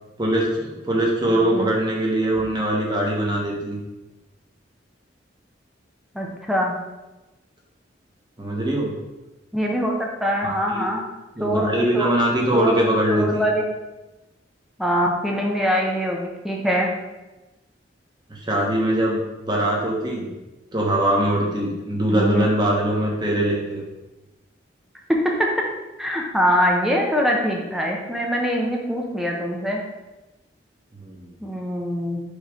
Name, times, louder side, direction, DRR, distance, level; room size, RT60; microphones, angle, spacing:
voice 1, 0.2-3.8 8.4-8.9 10.4-10.9 11.4-13.4 18.3-19.2 19.5-20.3 20.7-23.8 30.9-31.3, right 1 dB, 20° right, -3 dB, 1.2 m, -22 dB
voice 2, 6.1-6.7 9.5-11.0 11.4-12.1 12.5-12.8 13.1-13.6 14.8-16.9 22.1-22.5 25.1-25.5 26.0-29.8 31.4-32.2, equal, ahead, -1 dB, 0.7 m, -23 dB
6.5 x 3.2 x 4.9 m, 1.1 s
head